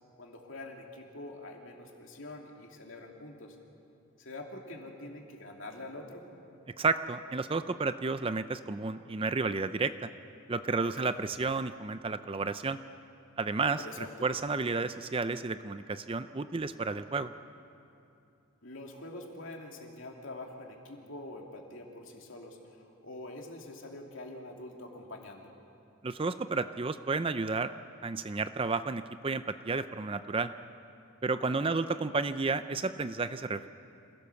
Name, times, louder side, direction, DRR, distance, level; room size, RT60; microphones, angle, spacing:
voice 1, 0.2-3.6 4.2-6.2 10.8-11.1 13.6-14.3 18.6-25.5 31.4-31.8, left 2 dB, 60° left, 1 dB, 2.9 m, -45 dB
voice 2, 6.8-10.1 10.5-12.8 13.4-17.3 26.0-27.7 28.0-30.5 31.2-33.7, right 4 dB, 25° right, 11 dB, 0.4 m, -32 dB
27.5 x 17.0 x 7.0 m, 2.6 s
head